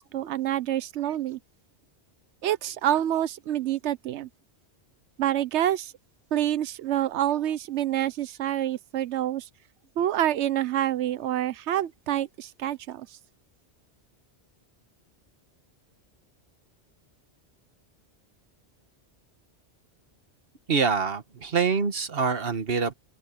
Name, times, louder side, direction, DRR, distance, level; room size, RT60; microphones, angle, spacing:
voice 1, 0.0-1.4 2.4-4.3 5.2-5.9 6.3-9.5 10.0-13.1, right 12 dB, 85° right, 1.0 m, -27 dB
voice 2, 20.7-22.9, right 5 dB, 60° right, 1.6 m, -25 dB
open air
omnidirectional pair, 1.1 m